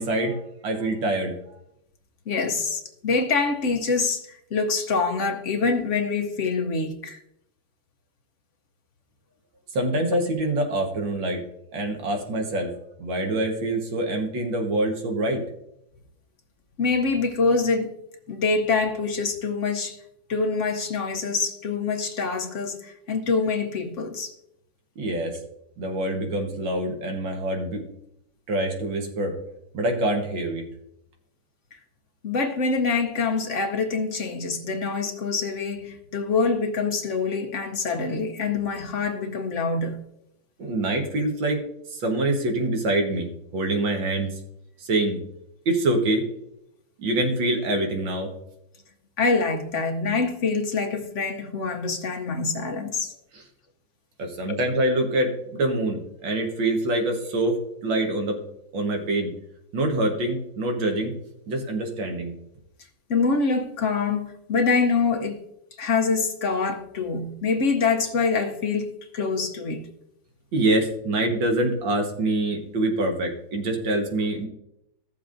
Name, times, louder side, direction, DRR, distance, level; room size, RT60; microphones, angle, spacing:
voice 1, 0.0-1.6 9.7-11.4 11.7-12.7 13.0-15.4 25.0-25.4 25.8-27.9 28.5-29.4 29.7-30.7 40.6-41.6 41.9-44.4 44.8-45.2 45.7-46.2 47.0-48.3 53.3-53.4 54.2-58.4 58.7-59.3 59.7-61.1 61.5-62.3 70.5-74.5, right 1 dB, 75° right, 2.0 m, -25 dB
voice 2, 2.3-7.2 16.8-18.0 18.3-20.0 20.3-24.3 32.2-40.0 49.2-53.1 54.5-54.6 63.1-65.4 65.8-69.9, left 4 dB, 60° left, 0.8 m, -25 dB
15.0 x 7.0 x 2.5 m
omnidirectional pair, 2.1 m